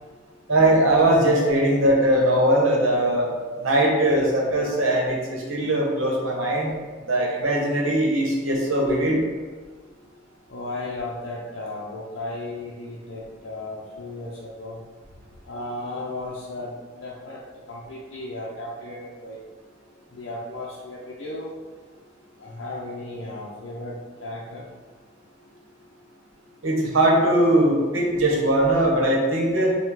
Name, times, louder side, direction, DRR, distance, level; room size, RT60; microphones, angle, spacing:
voice 1, 0.5-3.3 3.6-6.7 7.1-9.2 26.6-29.8, right 1 dB, 80° right, -2 dB, 0.9 m, -20 dB
voice 2, 10.5-14.8 15.5-17.4 17.7-19.4 20.1-21.5 22.4-24.7, left 2 dB, 60° left, -6 dB, 0.5 m, -35 dB
5.6 x 2.2 x 3.1 m, 1.4 s
head